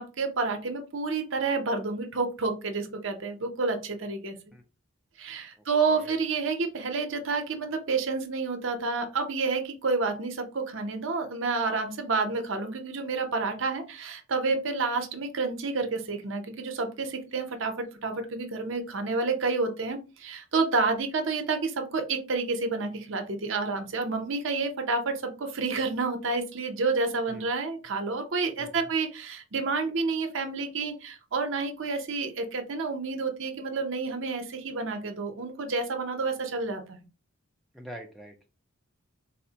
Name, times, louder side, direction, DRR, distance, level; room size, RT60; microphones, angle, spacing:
voice 1, 0.0-4.4 5.2-37.0, right 4 dB, 60° right, 5 dB, 0.6 m, -29 dB
voice 2, 5.6-6.2 27.3-27.5 28.6-28.9 37.7-38.5, equal, ahead, 3 dB, 0.4 m, -46 dB
4.2 x 2.1 x 2.7 m, 0.31 s
head